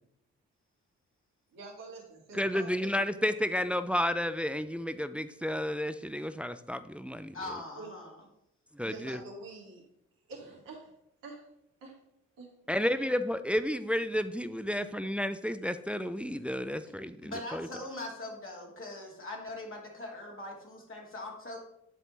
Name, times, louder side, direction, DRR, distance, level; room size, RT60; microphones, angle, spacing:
voice 1, 1.5-2.9 7.8-7.9 8.8-9.8 10.3-10.9 11.2-11.5 11.8-12.0 12.4-12.5 17.3-17.4, right 3 dB, 80° right, -3 dB, 1.8 m, -46 dB
voice 2, 2.3-7.4 8.7-9.2 12.7-17.7, left 1 dB, 5° right, 11 dB, 0.4 m, -31 dB
voice 3, 7.3-8.2 17.2-21.6, left 2 dB, 40° left, -1 dB, 2.2 m, -41 dB
9.5 x 3.6 x 4.0 m, 0.79 s
hypercardioid pair, 40°, 33 cm